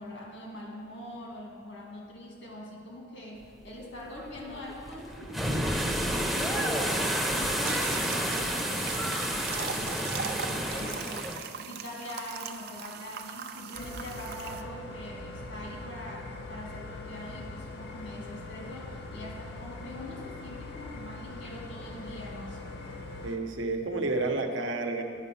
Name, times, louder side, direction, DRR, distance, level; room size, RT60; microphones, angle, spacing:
voice 1, 0.0-11.3 11.6-22.9, left 1 dB, 75° left, -2 dB, 2.0 m, -43 dB
sound 1, 3.7-11.4, equal, ahead, 0.6 m, -30 dB
sound 2, 7.6-14.6, right 6 dB, 55° right, 0.4 m, -40 dB
sound 3, 13.7-23.4, left 2 dB, 55° left, 0.9 m, -42 dB
voice 2, 23.2-25.0, right 3 dB, 80° right, 4 dB, 0.8 m, -30 dB
9.0 x 5.4 x 5.7 m, 2.3 s
head